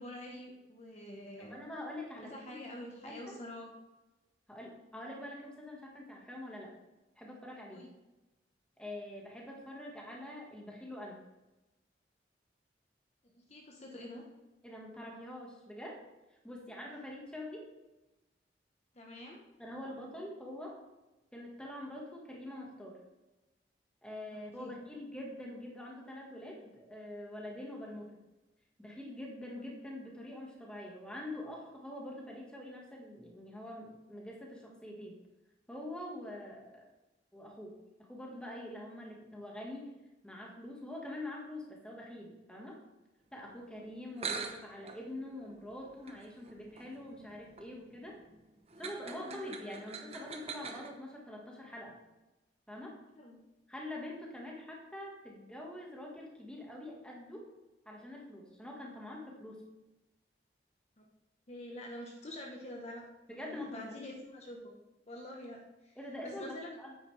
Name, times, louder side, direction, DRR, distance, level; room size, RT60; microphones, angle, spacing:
voice 1, 0.0-1.6 2.2-3.7 7.7-7.9 13.5-14.2 18.9-19.4 24.6-24.8 49.2-49.4 53.2-53.4 61.0-61.1 61.5-63.0 63.4-64.7 65.1-66.0 66.2-66.7, left 1 dB, 40° left, 0 dB, 1.1 m, -46 dB
voice 2, 1.5-2.6 3.0-3.4 4.5-6.7 7.2-7.9 8.8-11.2 14.6-16.0 16.4-17.7 19.6-20.8 21.3-23.0 24.0-28.2 28.8-35.2 35.7-36.9 37.3-37.8 38.1-39.9 40.2-42.8 43.3-48.2 48.8-51.9 52.7-53.0 53.7-57.5 57.8-59.6 63.3-64.1 66.0-66.9, left 1 dB, 5° left, -2 dB, 1.6 m, -45 dB
sound 1, 43.9-44.0 44.2-50.9, right 5 dB, 35° right, 0.9 m, -45 dB
9.2 x 8.9 x 3.4 m, 1.0 s
head